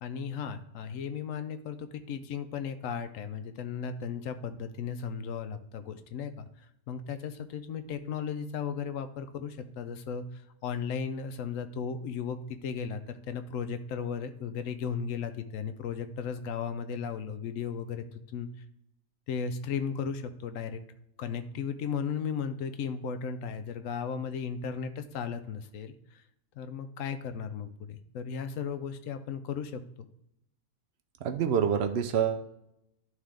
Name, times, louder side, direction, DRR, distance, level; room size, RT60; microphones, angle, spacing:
voice 1, 0.0-6.5 6.9-18.5 19.3-20.8 21.2-26.2 26.6-30.1, left 6 dB, 70° left, 9 dB, 0.9 m, -35 dB
voice 2, 31.2-32.4, right 8 dB, 60° right, 7 dB, 0.7 m, -26 dB
11.0 x 3.7 x 3.4 m, 0.81 s
omnidirectional pair, 1.5 m